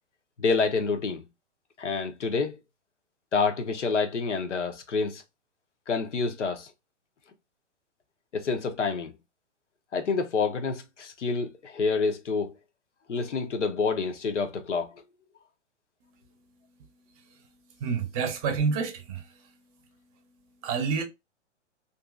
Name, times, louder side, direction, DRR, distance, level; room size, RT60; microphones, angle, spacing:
voice 1, 0.4-1.2 1.8-2.6 3.3-5.2 5.9-6.7 8.3-9.2 9.9-12.6 13.1-14.9, left 4 dB, 85° left, 0.7 m, -28 dB
voice 2, 17.8-19.2 20.6-21.0, right 5 dB, 30° right, 0.6 m, -28 dB
2.8 x 2.6 x 2.3 m
figure-of-eight pair, 120°, 35 cm